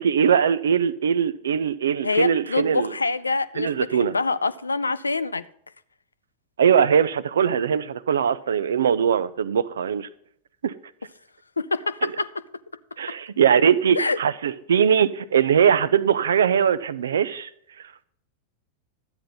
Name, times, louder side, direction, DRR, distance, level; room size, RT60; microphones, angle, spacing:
voice 1, 0.0-2.9 3.6-4.1 6.6-10.1 10.6-10.7 12.0-12.1 13.0-17.5, right 7 dB, 65° right, 0.5 m, -21 dB
voice 2, 2.0-5.4 11.6-12.3 13.9-14.2, left 3 dB, 80° left, 0.4 m, -25 dB
12.5 x 8.9 x 4.0 m
figure-of-eight pair, 90°, 0 cm